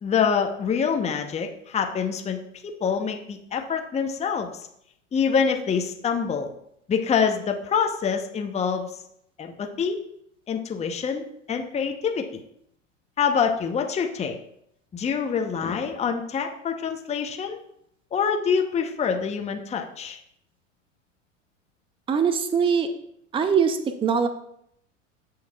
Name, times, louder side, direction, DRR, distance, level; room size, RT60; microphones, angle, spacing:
voice 1, 0.0-4.7 5.1-6.5 6.9-8.9 9.4-10.0 10.5-12.4 13.2-14.3 14.9-17.6 18.1-20.2, left 6 dB, 15° left, 4 dB, 0.8 m, -26 dB
voice 2, 22.1-22.9 23.3-24.3, right 6 dB, 15° right, 9 dB, 0.6 m, -22 dB
14.0 x 4.7 x 2.3 m, 0.72 s
hypercardioid pair, 85°, 37 cm